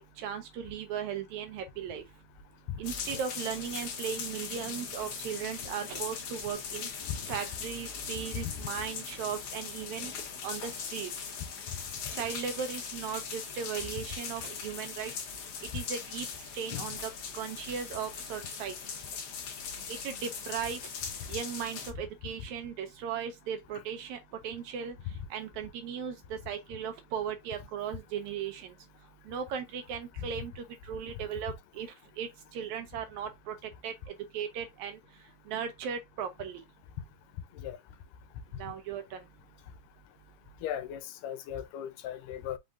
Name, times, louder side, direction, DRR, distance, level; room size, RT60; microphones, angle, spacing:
voice 1, 0.0-2.0 2.8-6.9 7.3-10.1 10.4-11.1 12.1-15.1 15.7-16.3 16.5-18.7 19.9-20.9 21.3-25.0 25.3-28.7 29.3-33.9 34.3-35.0 35.5-36.6 38.6-39.2, right 8 dB, 75° right, 1.8 m, -37 dB
sound 1, 2.8-21.9, left 6 dB, 65° left, 1.6 m, -40 dB
voice 2, 40.6-42.6, left 10 dB, 85° left, 2.2 m, -37 dB
5.4 x 3.7 x 2.6 m
omnidirectional pair, 3.7 m